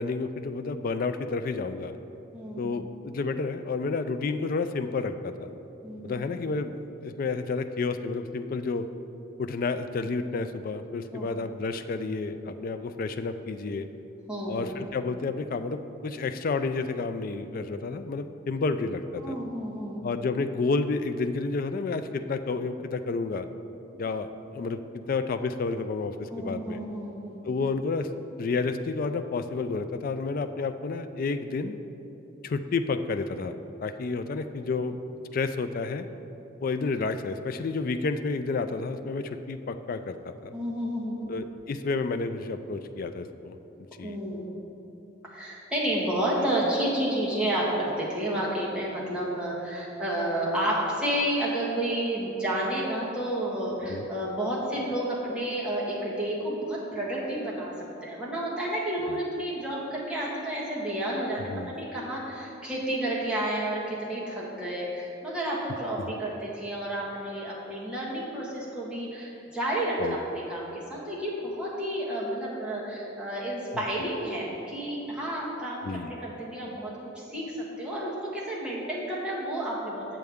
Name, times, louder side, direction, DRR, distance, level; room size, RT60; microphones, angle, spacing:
voice 1, 0.0-2.0 2.6-5.5 6.0-8.9 9.4-13.9 14.5-19.4 20.0-23.5 24.0-26.8 27.4-28.1 28.4-31.8 32.4-33.5 33.8-35.0 35.3-36.1 36.6-40.5 41.3-43.6 44.0-44.2 53.9-54.1 59.1-59.2 61.4-61.8 66.0-66.1 70.0-70.2 73.7-73.8 75.8-76.2, left 4 dB, 45° left, 9 dB, 0.3 m, -30 dB
voice 2, 2.3-2.7 5.8-6.2 11.1-11.3 14.3-14.8 19.2-20.0 26.3-27.4 40.5-41.3 44.0-44.5 45.3-57.7 58.0-61.4 61.7-80.1, right 1 dB, 5° right, -7 dB, 1.4 m, -31 dB
7.9 x 7.5 x 3.5 m, 2.9 s
head